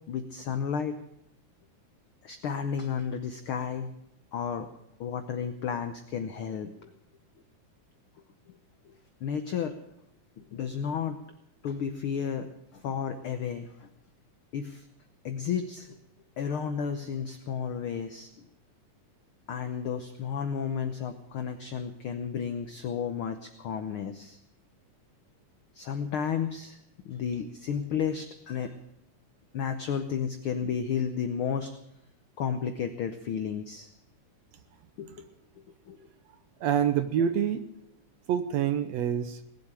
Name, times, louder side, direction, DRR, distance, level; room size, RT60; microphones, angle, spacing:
voice 1, 0.1-1.0 2.2-3.9 4.3-4.7 5.0-6.9 8.9-9.0 9.2-9.8 10.4-11.2 11.6-13.9 14.5-14.8 15.2-16.0 16.4-18.3 19.5-24.4 25.7-26.8 27.0-28.8 29.5-31.7 32.4-33.9 35.0-35.3 35.9-36.0, left 7 dB, 85° left, 8 dB, 1.1 m, -32 dB
voice 2, 36.6-37.7 38.3-39.4, right 9 dB, 70° right, 11 dB, 1.7 m, -26 dB
19.0 x 8.0 x 8.8 m, 0.81 s
omnidirectional pair, 3.6 m